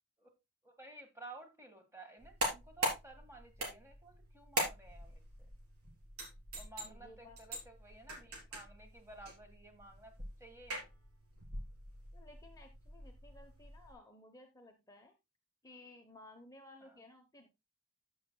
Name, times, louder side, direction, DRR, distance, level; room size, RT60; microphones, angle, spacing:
voice 1, 0.6-5.2 6.5-10.9 16.8-17.0, right 2 dB, 10° right, 1.8 m, -54 dB
sound 1, 2.2-13.9, right 1 dB, 75° right, 4.1 m, -43 dB
voice 2, 6.8-7.4 12.1-15.1 15.6-17.5, left 2 dB, 15° left, 1.0 m, -57 dB
14.5 x 6.5 x 2.3 m
head